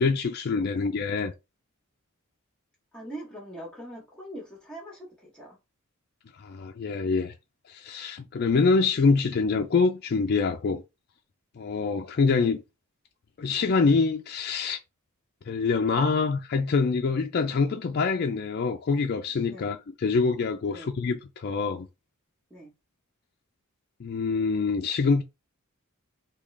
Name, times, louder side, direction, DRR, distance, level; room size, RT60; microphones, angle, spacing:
voice 1, 0.0-1.3 6.4-7.3 7.7-10.8 11.6-12.6 13.4-14.8 15.5-21.9 24.0-25.2, left 4 dB, 45° left, 0.4 m, -25 dB
voice 2, 2.9-5.6 19.4-19.7 20.6-20.9 22.5-22.7, right 1 dB, 5° left, 1.0 m, -42 dB
3.6 x 2.4 x 3.2 m
head